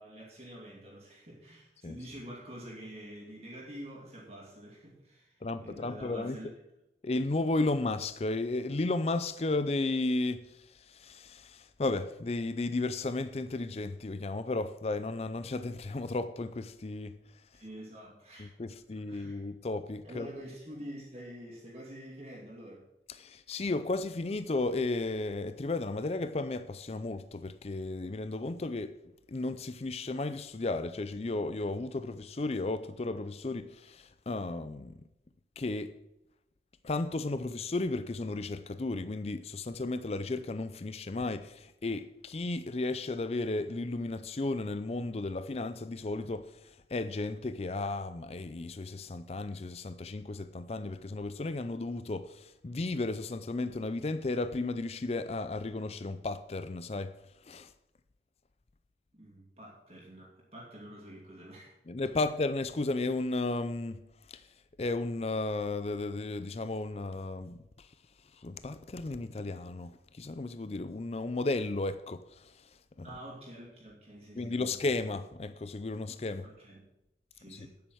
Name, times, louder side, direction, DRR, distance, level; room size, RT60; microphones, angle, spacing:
voice 1, 0.0-6.5 17.5-18.5 19.1-19.4 20.0-22.8 59.1-61.8 62.1-62.2 73.0-74.7 76.4-76.8 77.3-77.8, equal, 35° right, 2.6 m, -47 dB
voice 2, 5.4-6.4 7.0-17.1 18.4-20.3 23.1-29.0 29.3-35.0 35.6-36.0 36.8-57.2 57.4-57.7 61.9-64.0 64.3-64.5 64.8-67.9 68.4-72.7 73.0-73.1 74.4-76.5 77.5-77.7, left 2 dB, 35° left, 0.5 m, -34 dB
9.2 x 8.7 x 6.3 m
head